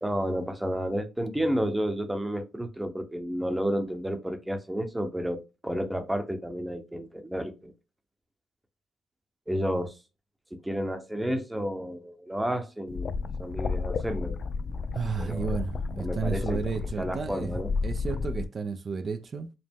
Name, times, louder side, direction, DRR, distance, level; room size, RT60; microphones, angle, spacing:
voice 1, 0.0-7.7 9.5-10.0 10.6-14.4 15.2-15.5 16.0-16.6 17.0-17.7, equal, 10° right, 0.8 m, -31 dB
sound 1, 12.9-18.4, left 4 dB, 45° left, 0.3 m, -32 dB
voice 2, 14.9-19.5, right 5 dB, 40° right, 0.5 m, -33 dB
5.1 x 2.0 x 3.5 m
cardioid pair, 90°, 0 cm